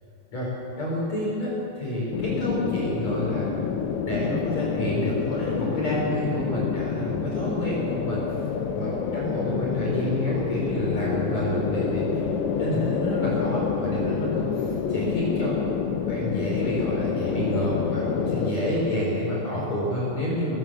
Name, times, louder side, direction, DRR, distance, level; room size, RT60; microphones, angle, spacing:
voice 1, 0.8-3.6 4.0-8.4 8.8-12.0 12.6-15.6 16.1-20.6, left 1 dB, 40° left, -5 dB, 5.9 m, -28 dB
sound 1, 2.1-18.5, left 7 dB, 80° left, 3.6 m, -28 dB
19.0 x 18.5 x 7.7 m, 2.8 s
omnidirectional pair, 5.2 m